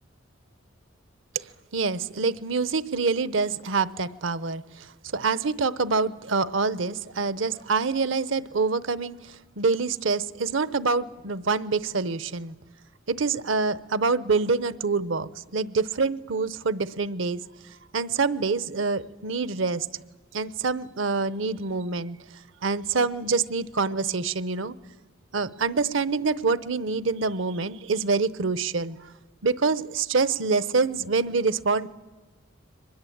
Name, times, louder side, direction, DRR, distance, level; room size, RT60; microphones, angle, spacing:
voice 1, 1.7-4.9 5.1-12.5 13.1-17.4 17.9-19.9 20.3-22.2 22.6-24.7 25.3-29.0 29.4-31.9, right 4 dB, 70° right, 16 dB, 0.8 m, -26 dB
23.5 x 20.5 x 8.6 m, 1.2 s
head